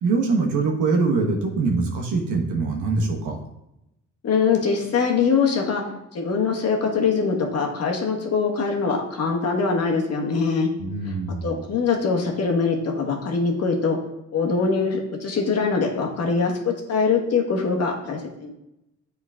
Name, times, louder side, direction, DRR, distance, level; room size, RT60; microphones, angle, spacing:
voice 1, 0.0-3.4 10.8-11.6, right 4 dB, 80° right, 1 dB, 1.1 m, -23 dB
voice 2, 4.2-5.8 6.1-10.7 11.0-11.1 11.4-14.0 14.3-18.5, left 5 dB, 55° left, 1 dB, 1.3 m, -23 dB
7.4 x 3.8 x 3.6 m, 0.87 s
cardioid pair, 90°, 30 cm